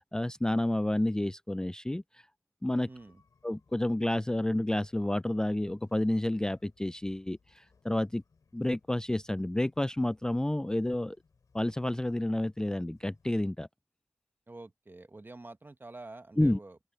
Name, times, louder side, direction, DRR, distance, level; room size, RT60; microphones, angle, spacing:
voice 1, 0.0-2.2 2.6-2.9 3.4-8.2 8.5-11.2 11.5-13.7 16.4-16.6, left 1 dB, 10° left, 0.3 m, -30 dB
voice 2, 2.8-3.2 14.5-16.8, right 2 dB, 35° right, 1.2 m, -47 dB
sound 1, 2.9-13.3, left 4 dB, 80° left, 3.2 m, -68 dB
open air
cardioid pair, 45°, 6 cm